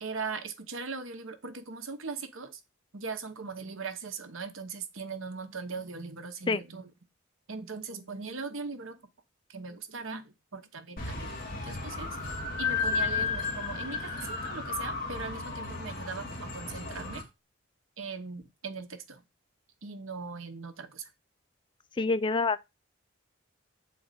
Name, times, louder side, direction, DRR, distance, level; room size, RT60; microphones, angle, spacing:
voice 1, 0.0-2.6 2.9-6.9 7.5-9.0 9.5-17.3 18.0-19.2 19.8-21.1, right 4 dB, 75° right, 1.0 m, -40 dB
sound 1, 11.0-17.2, left 4 dB, 45° left, 2.1 m, -33 dB
voice 2, 22.0-22.6, left 3 dB, 25° left, 0.3 m, -26 dB
7.5 x 4.2 x 4.2 m
head